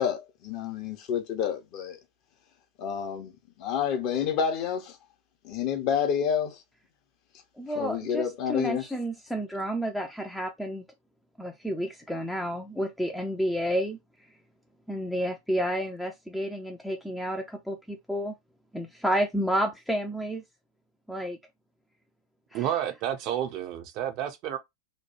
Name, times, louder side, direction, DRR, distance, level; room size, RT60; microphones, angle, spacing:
voice 1, 0.0-2.0 2.8-3.3 3.6-5.0 5.4-6.6 7.8-8.8, left 8 dB, 40° left, 0.8 m, -29 dB
voice 2, 7.6-10.8 11.4-14.0 14.9-18.3 18.7-20.4 21.1-21.4 22.5-22.7, equal, ahead, 0.5 m, -30 dB
voice 3, 22.5-24.6, right 10 dB, 40° right, 0.6 m, -30 dB
3.1 x 2.2 x 4.2 m
figure-of-eight pair, 90°, 0 cm